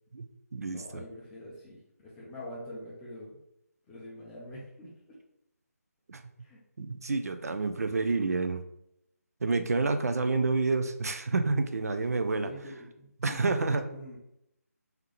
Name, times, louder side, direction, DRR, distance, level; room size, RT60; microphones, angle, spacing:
voice 1, 0.1-1.0 6.1-6.2 6.8-8.6 9.4-12.5 13.2-13.8, right 3 dB, 70° right, 8 dB, 0.5 m, -29 dB
voice 2, 0.7-3.4 3.9-5.2 6.4-6.6 12.3-14.2, equal, 5° left, -6 dB, 0.4 m, -45 dB
3.4 x 2.9 x 3.8 m, 0.80 s
figure-of-eight pair, 165°, 9 cm